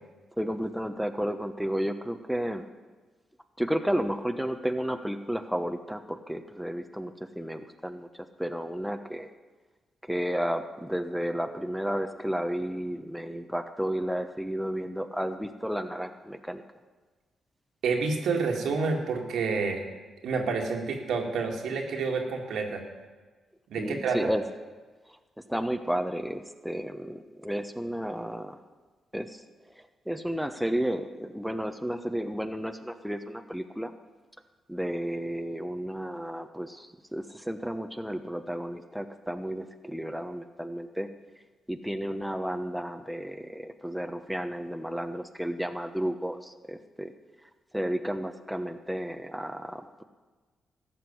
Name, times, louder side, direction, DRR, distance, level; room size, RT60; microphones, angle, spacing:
voice 1, 0.4-2.6 3.6-8.1 8.4-9.3 10.1-16.6 23.8-24.4 25.5-28.6 29.1-29.4 29.7-33.9 34.7-41.1 41.7-47.1 47.7-50.0, equal, ahead, 6 dB, 1.1 m, -32 dB
voice 2, 17.8-19.8 20.2-22.8 23.7-24.3, right 4 dB, 75° right, 2 dB, 2.1 m, -29 dB
14.0 x 6.1 x 10.0 m, 1.3 s
supercardioid pair, 55°, 0 cm